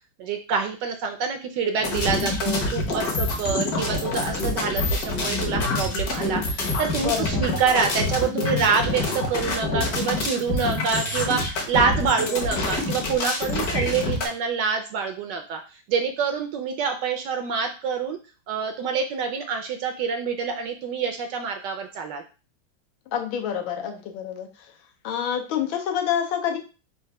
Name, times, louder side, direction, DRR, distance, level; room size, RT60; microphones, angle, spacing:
voice 1, 0.2-18.2 18.5-22.2, right 5 dB, 75° right, 5 dB, 1.1 m, -26 dB
sound 1, 1.8-14.3, left 2 dB, 55° left, 1.4 m, -26 dB
voice 2, 7.0-7.5 23.1-24.5 25.0-26.6, left 9 dB, 75° left, 3 dB, 1.5 m, -27 dB
4.4 x 2.5 x 4.7 m, 0.33 s
omnidirectional pair, 2.2 m